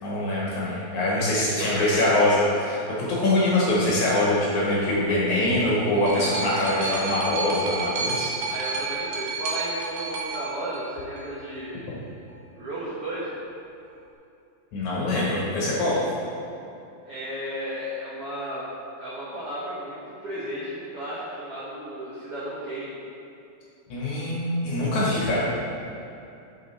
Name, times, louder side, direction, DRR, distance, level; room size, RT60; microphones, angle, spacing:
voice 1, 0.0-8.3 14.7-16.0 23.9-25.4, left 1 dB, 60° left, -6 dB, 2.3 m, -23 dB
voice 2, 1.6-2.1 8.5-11.9 12.5-13.3 17.0-18.6 19.0-20.0 20.2-23.0, right 1 dB, 65° right, -9 dB, 1.4 m, -34 dB
sound 1, 5.5-11.4 12.3-12.4, right 3 dB, 85° right, 1.5 m, -31 dB
7.4 x 6.9 x 4.2 m, 2.7 s
omnidirectional pair, 4.5 m